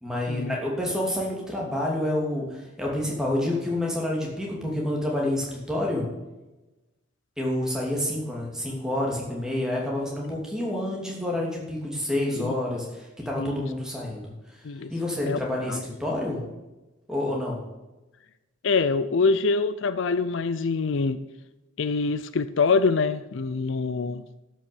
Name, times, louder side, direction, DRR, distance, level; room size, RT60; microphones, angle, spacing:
voice 1, 0.0-6.0 7.4-14.6 14.9-16.4 17.1-17.6, left 1 dB, 5° right, -3 dB, 2.6 m, -28 dB
voice 2, 15.3-15.8 18.6-21.2 21.8-24.2, left 4 dB, 65° left, 14 dB, 0.5 m, -25 dB
12.0 x 6.2 x 6.9 m, 1.1 s
head